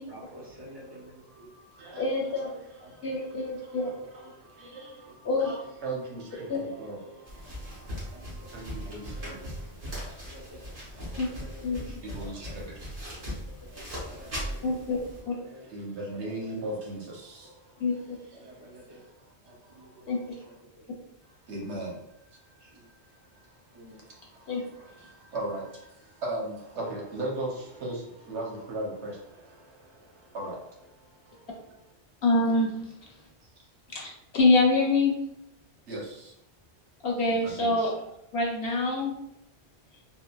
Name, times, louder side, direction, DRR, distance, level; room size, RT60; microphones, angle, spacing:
voice 1, 0.0-1.5 1.9-2.0 2.4-2.5 2.8-2.9 3.3-3.4 3.8-4.3 5.4-5.5 6.7-7.1 8.1-8.5 8.8-9.5 9.9-10.7 10.9-12.7 13.3-14.8 15.4-16.7 18.3-19.0 19.4-20.1 20.4-21.0 22.6-22.9 23.7-24.1, equal, 25° right, -5 dB, 0.7 m, -50 dB
voice 2, 1.3-2.1 2.5-9.4 10.7-11.3 12.0-12.9 15.7-17.8 18.4-18.6 18.9-20.1 21.3-22.0 22.3-31.8 35.9-36.3 37.3-37.9, right 1 dB, 85° right, -2 dB, 1.1 m, -39 dB
voice 3, 2.0-2.5 3.0-3.9 5.2-5.5 6.5-6.6 11.2-11.3 11.6-11.8 14.6-15.0 15.3-15.4 17.8-18.2 20.1-20.2 24.5-24.6 32.2-32.7 33.9-35.1 37.0-37.9 38.3-39.1, left 2 dB, 60° left, -2 dB, 0.9 m, -25 dB
sound 1, 7.3-15.2, equal, 65° right, 1.4 m, -39 dB
3.6 x 2.0 x 2.2 m, 0.80 s
omnidirectional pair, 1.1 m